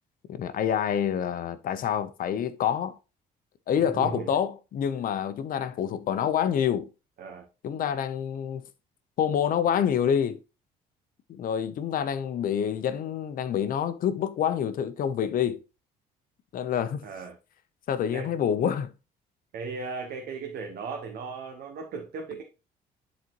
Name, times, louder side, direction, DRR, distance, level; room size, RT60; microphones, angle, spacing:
voice 1, 0.3-2.9 3.7-6.9 7.6-8.7 9.2-10.4 11.3-15.6 16.5-17.1 17.9-18.9, left 8 dB, 55° left, 0.8 m, -27 dB
voice 2, 3.8-4.3 7.2-7.5 17.0-17.4 18.1-18.3 19.5-22.4, right 5 dB, 65° right, 1.1 m, -36 dB
10.5 x 4.2 x 3.0 m
cardioid pair, 110°, 17 cm